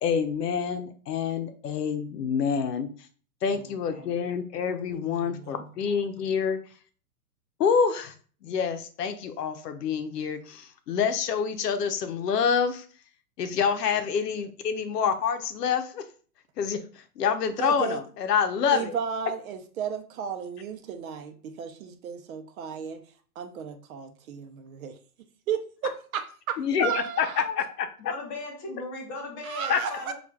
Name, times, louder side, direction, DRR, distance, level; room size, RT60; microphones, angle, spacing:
voice 1, 0.0-2.9 3.4-6.6 7.6-8.1 8.4-12.8 13.4-16.0 16.6-16.8 17.2-19.0 26.6-27.6 29.7-29.8, left 6 dB, 90° left, 0.7 m, -27 dB
voice 2, 3.5-4.1 27.4-27.6 28.0-30.1, left 2 dB, 15° left, 0.5 m, -38 dB
voice 3, 5.0-5.7 17.6-18.0 18.7-23.0 23.4-25.0 25.5-27.4 29.4-30.1, right 7 dB, 60° right, 0.6 m, -34 dB
4.2 x 2.4 x 2.3 m
hypercardioid pair, 140°, 47 cm